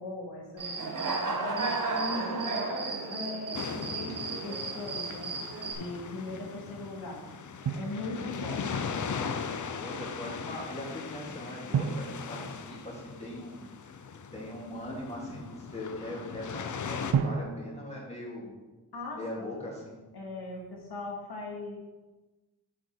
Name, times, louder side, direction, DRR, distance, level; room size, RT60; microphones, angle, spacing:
voice 1, 0.0-1.7 1.9-5.3 5.7-7.2 7.7-8.7 18.9-19.2 20.1-21.8, left 2 dB, 80° left, -2 dB, 1.9 m, -39 dB
Human voice / Cricket, 0.6-5.7, right 3 dB, 55° right, 1.2 m, -33 dB
sound 1, 3.5-17.1, left 6 dB, 50° left, 0.6 m, -39 dB
Drum, 7.7-8.7 11.7-13.6 17.1-19.1, right 6 dB, 75° right, 0.7 m, -34 dB
voice 2, 9.7-13.9 14.3-18.5 19.1-20.0, left 1 dB, 15° left, -4 dB, 2.4 m, -40 dB
7.6 x 6.5 x 4.5 m, 1.2 s
wide cardioid pair, 150°, 39 cm